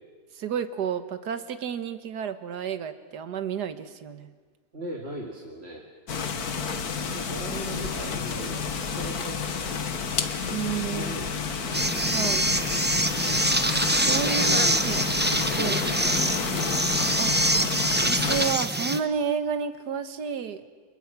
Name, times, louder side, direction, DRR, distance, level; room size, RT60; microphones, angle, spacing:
voice 1, 0.3-4.3 10.5-11.2 12.1-12.5 14.1-15.0 15.6-15.8 17.2-17.3 17.9-20.6, right 7 dB, 70° right, 10 dB, 1.8 m, -31 dB
voice 2, 4.7-5.9 7.0-10.0 10.6-11.9 14.1-15.1 15.5-16.6, right 1 dB, 35° right, -1 dB, 2.6 m, -39 dB
sound 1, 6.1-18.5, left 6 dB, 60° left, 1.8 m, -30 dB
sound 2, 11.7-19.0, right 1 dB, 10° right, 0.7 m, -25 dB
29.0 x 29.0 x 6.0 m, 1.5 s
omnidirectional pair, 1.8 m